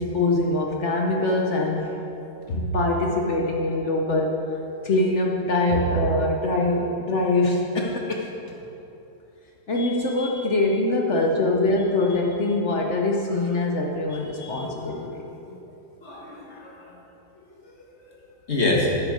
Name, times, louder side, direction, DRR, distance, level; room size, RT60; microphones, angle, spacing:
voice 1, 0.0-1.9 2.5-4.4 4.8-8.3 9.7-15.2, left 2 dB, 60° left, 0 dB, 0.7 m, -23 dB
voice 2, 14.2-14.7 15.5-15.6 16.0-16.9 17.8-18.1 18.5-18.9, left 2 dB, 35° left, -2 dB, 1.6 m, -28 dB
8.8 x 7.7 x 6.2 m, 2.8 s
omnidirectional pair, 2.3 m